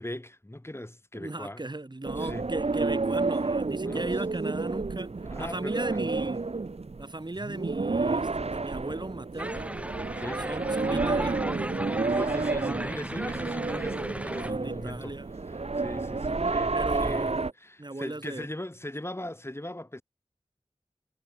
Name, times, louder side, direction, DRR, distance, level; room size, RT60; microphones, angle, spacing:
voice 1, 0.0-1.6 2.2-2.5 3.9-4.1 5.3-6.0 10.2-10.5 12.1-15.2 15.8-17.3 17.6-20.0, left 1 dB, 25° left, 5.8 m, -39 dB
voice 2, 1.1-5.1 5.4-6.5 7.0-9.7 10.4-11.4 14.5-15.3 16.2-17.5 17.8-18.5, right 2 dB, 45° right, 3.8 m, -37 dB
sound 1, 2.0-17.5, right 3 dB, 75° right, 1.9 m, -30 dB
sound 2, 9.4-14.5, right 1 dB, 10° right, 2.6 m, -36 dB
wide cardioid pair, 55°, 11 cm